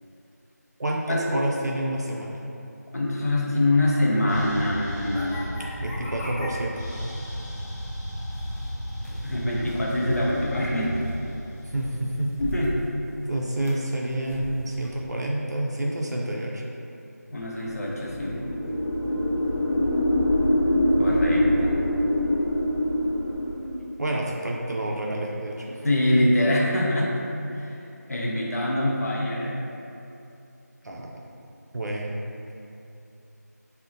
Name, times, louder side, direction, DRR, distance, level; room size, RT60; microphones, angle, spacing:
voice 1, 0.8-2.3 5.8-6.9 11.6-12.3 13.3-16.6 24.0-25.8 30.8-31.2 31.7-32.2, right 1 dB, 70° right, -2 dB, 0.4 m, -28 dB
voice 2, 2.9-5.4 9.2-11.0 12.4-12.7 17.3-18.4 21.0-21.7 25.7-27.2 27.5-27.8 28.1-29.6, left 1 dB, 60° left, -5 dB, 0.6 m, -24 dB
sound 1, 4.3-12.8, equal, 10° left, 0.7 m, -34 dB
sound 2, 8.3-15.1, right 1 dB, 45° right, 0.7 m, -40 dB
sound 3, 17.7-23.8, left 1 dB, 35° left, 0.8 m, -24 dB
3.7 x 2.1 x 2.5 m, 2.8 s
figure-of-eight pair, 180°, 9 cm